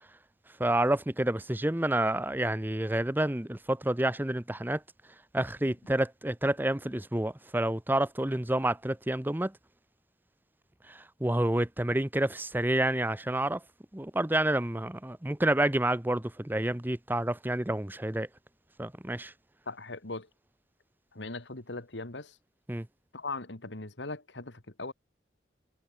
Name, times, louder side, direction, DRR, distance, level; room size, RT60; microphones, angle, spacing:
voice 1, 0.6-4.8 5.3-9.5 10.9-13.6 13.9-18.3 18.8-19.3 22.7-22.9, right 1 dB, 10° right, 0.8 m, -29 dB
voice 2, 19.7-20.3 21.1-22.4 23.1-24.9, left 3 dB, 80° left, 2.4 m, -39 dB
head